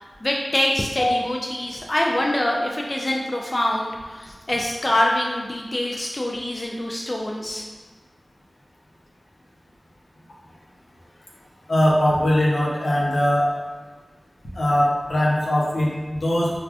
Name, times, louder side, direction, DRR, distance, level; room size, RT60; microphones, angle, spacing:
voice 1, 0.0-7.6, left 1 dB, 35° left, -1 dB, 0.3 m, -25 dB
voice 2, 11.7-13.5 14.5-16.5, left 1 dB, 85° left, -4 dB, 0.7 m, -20 dB
4.7 x 2.3 x 2.4 m, 1.4 s
wide cardioid pair, 60°, 0 cm